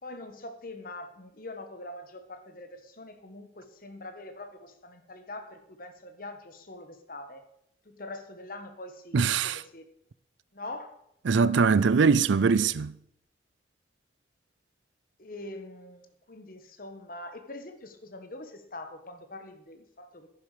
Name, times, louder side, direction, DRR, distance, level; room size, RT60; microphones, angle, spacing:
voice 1, 0.0-7.4 7.8-9.9 10.5-11.0 15.2-20.3, left 2 dB, 50° left, 1.4 m, -43 dB
voice 2, 9.1-9.6 11.3-13.0, right 5 dB, 85° right, 0.5 m, -22 dB
11.0 x 10.0 x 5.0 m
head